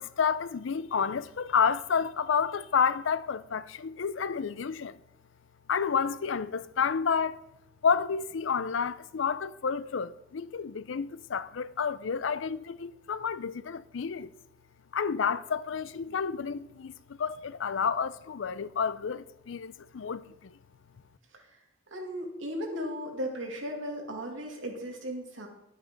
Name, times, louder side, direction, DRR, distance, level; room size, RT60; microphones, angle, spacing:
voice 1, 0.0-5.0 5.7-7.4 7.8-14.3 14.9-20.6, left 6 dB, 75° left, 0.5 m, -30 dB
voice 2, 21.9-25.5, equal, 80° right, 2.4 m, -36 dB
11.0 x 8.7 x 5.2 m
head